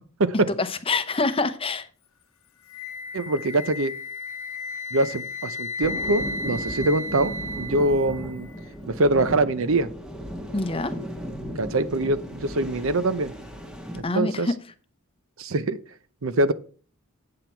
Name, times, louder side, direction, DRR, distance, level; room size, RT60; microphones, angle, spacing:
voice 1, 0.3-1.9 10.5-10.9 14.0-14.6, left 3 dB, 25° left, 11 dB, 0.7 m, -26 dB
Wind instrument woodwind instrument, 2.7-8.7, left 2 dB, 70° left, 1.0 m, -34 dB
voice 2, 3.1-3.9 4.9-8.5 8.9-9.9 11.6-13.3 14.1-14.5 15.4-15.8 16.2-16.5, right 2 dB, 65° right, 14 dB, 0.7 m, -23 dB
sound 1, 5.8-14.0, equal, 5° right, 1.3 m, -36 dB
8.7 x 8.0 x 4.5 m, 0.41 s
head